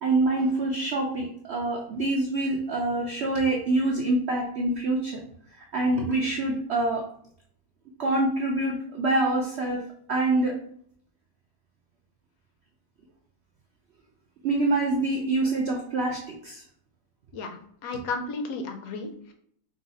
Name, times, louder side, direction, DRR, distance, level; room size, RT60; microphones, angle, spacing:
voice 1, 0.0-5.2 5.5-7.0 8.0-9.8 10.1-10.6 14.4-16.6, right 2 dB, 80° right, 0 dB, 0.5 m, -26 dB
voice 2, 17.3-19.3, left 3 dB, 65° left, 5 dB, 0.9 m, -34 dB
4.0 x 2.7 x 4.0 m, 0.63 s
omnidirectional pair, 1.9 m